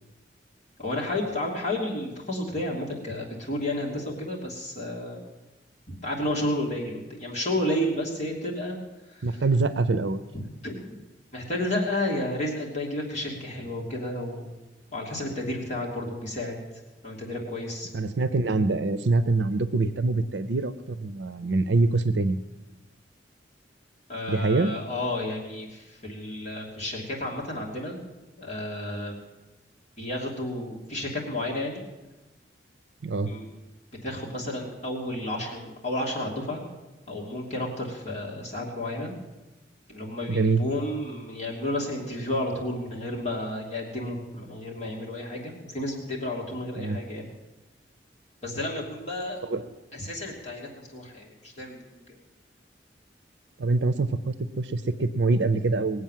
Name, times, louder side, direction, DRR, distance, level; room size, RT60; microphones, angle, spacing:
voice 1, 0.8-5.2 5.9-8.8 9.0-9.2 10.6-10.8 11.3-14.5 14.9-16.6 17.0-17.9 24.1-28.0 28.4-29.1 30.0-31.8 33.3-33.4 34.0-36.6 37.1-39.2 39.9-47.3 48.4-49.4 49.9-51.8 52.1-52.2, left 1 dB, 40° left, -2 dB, 2.8 m, -31 dB
voice 2, 9.2-10.2 17.9-22.4 24.3-24.7 33.0-33.3 40.3-40.6 46.8-47.0 49.4-49.7 53.6-56.0, right 3 dB, 70° right, 12 dB, 0.6 m, -25 dB
20.0 x 7.9 x 7.5 m, 1.1 s
head